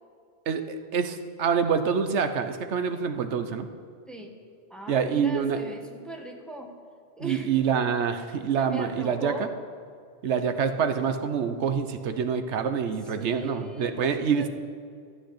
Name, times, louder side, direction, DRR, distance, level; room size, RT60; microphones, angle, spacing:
voice 1, 0.5-3.7 4.9-5.6 7.2-9.5 10.2-14.5, right 6 dB, 85° right, 8 dB, 1.1 m, -26 dB
voice 2, 4.7-6.7 7.2-7.5 8.6-9.5 13.1-14.5, right 2 dB, ahead, 2 dB, 1.2 m, -39 dB
13.5 x 6.5 x 9.8 m, 2.3 s
omnidirectional pair, 1.1 m